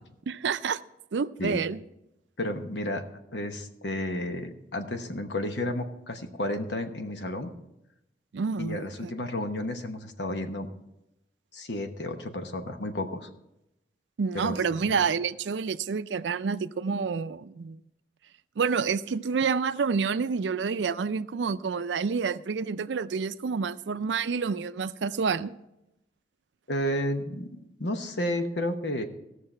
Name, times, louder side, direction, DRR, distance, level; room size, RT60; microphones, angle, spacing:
voice 1, 0.3-0.8 1.1-1.8 8.3-9.1 14.2-17.8 18.6-25.6, right 5 dB, 85° right, 0.4 m, -28 dB
voice 2, 2.4-3.1 3.3-7.5 8.6-10.7 11.5-13.3 14.3-14.6 26.7-29.0, left 1 dB, 70° left, 1.1 m, -32 dB
17.0 x 6.6 x 4.4 m
head